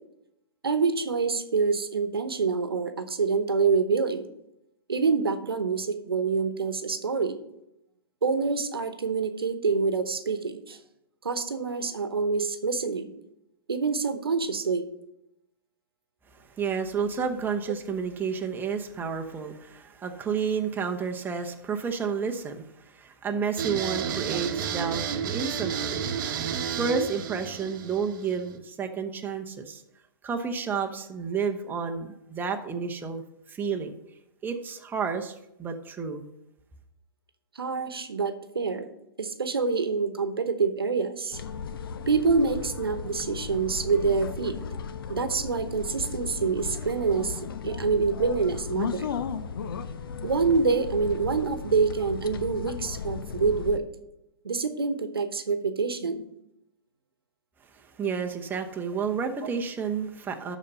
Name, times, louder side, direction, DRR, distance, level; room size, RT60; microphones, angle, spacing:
voice 1, 0.6-4.3 4.9-7.4 8.2-10.8 11.2-13.1 13.7-14.8 37.5-41.4 42.1-44.6 45.1-49.1 50.2-53.8 54.4-56.2 59.4-59.5, right 4 dB, 85° right, 9 dB, 1.0 m, -26 dB
voice 2, 16.4-25.1 25.3-26.0 26.7-29.8 30.2-33.2 33.5-34.0 34.4-35.3 35.6-36.3 58.0-60.6, right 6 dB, 15° right, 3 dB, 0.9 m, -31 dB
sound 1, 23.6-28.5, right 7 dB, 55° right, 1.0 m, -31 dB
sound 2, 41.3-53.8, left 6 dB, 70° left, 0.7 m, -35 dB
12.0 x 4.2 x 5.4 m, 0.84 s
hypercardioid pair, 115°, 12 cm